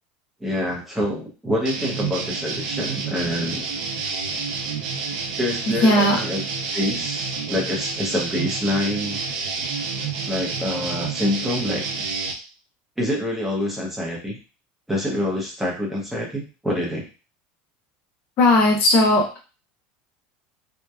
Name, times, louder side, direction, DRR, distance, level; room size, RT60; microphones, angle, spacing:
voice 1, 0.4-3.7 5.4-6.4 6.7-9.2 10.3-11.8 13.0-14.4 14.9-17.1, left 1 dB, 5° right, -3 dB, 0.6 m, -26 dB
sound 1, 1.6-12.3, right 4 dB, 85° right, 0.5 m, -29 dB
voice 2, 5.8-6.2 18.4-19.4, left 1 dB, 45° left, 1 dB, 0.7 m, -17 dB
2.7 x 2.1 x 2.3 m, 0.33 s
supercardioid pair, 150°, 4 cm